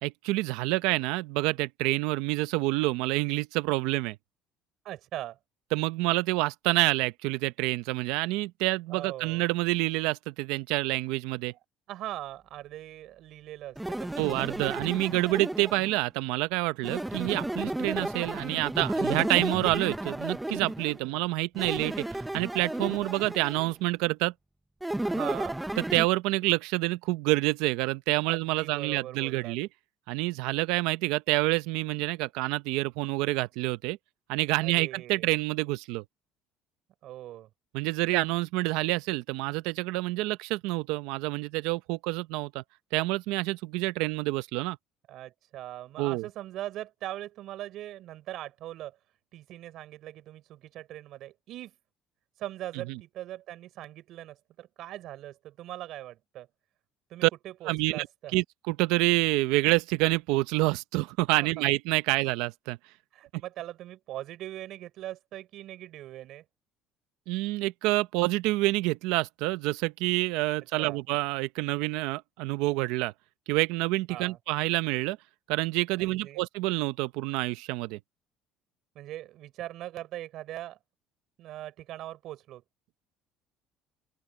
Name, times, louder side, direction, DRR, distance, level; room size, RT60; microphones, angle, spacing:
voice 1, 0.0-4.2 5.7-11.5 14.2-22.1 22.3-24.3 25.9-29.7 30.1-34.0 34.3-36.0 37.7-42.6 42.9-44.8 46.0-46.3 52.9-53.0 57.2-57.3 57.7-58.1 58.3-62.8 67.3-73.1 73.5-75.2 75.5-78.0, right 20 dB, 85° right, 0.7 m, -27 dB
voice 2, 4.8-5.4 8.9-9.4 11.9-14.8 21.0-21.2 25.1-25.6 28.1-29.6 34.6-35.3 37.0-37.5 45.1-49.0 49.3-51.7 52.4-56.5 57.1-58.3 61.6-61.7 63.1-66.4 70.8-71.0 74.1-74.4 76.0-76.4 78.9-80.8 81.4-82.6, right 14 dB, 55° right, 5.1 m, -41 dB
sound 1, 13.8-16.0 16.8-21.0 21.5-23.7 24.8-26.1, right 1 dB, 5° right, 0.7 m, -33 dB
open air
cardioid pair, 160°, 0 cm